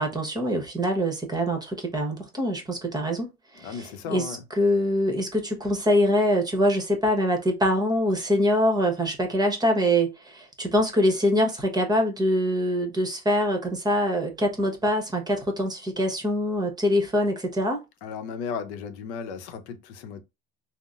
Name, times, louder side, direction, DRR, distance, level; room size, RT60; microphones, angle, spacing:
voice 1, 0.0-17.8, equal, 10° right, 1.0 m, -24 dB
voice 2, 3.6-4.4 18.0-20.2, left 6 dB, 80° left, 0.7 m, -35 dB
3.7 x 2.1 x 2.4 m
supercardioid pair, 90°, 34 cm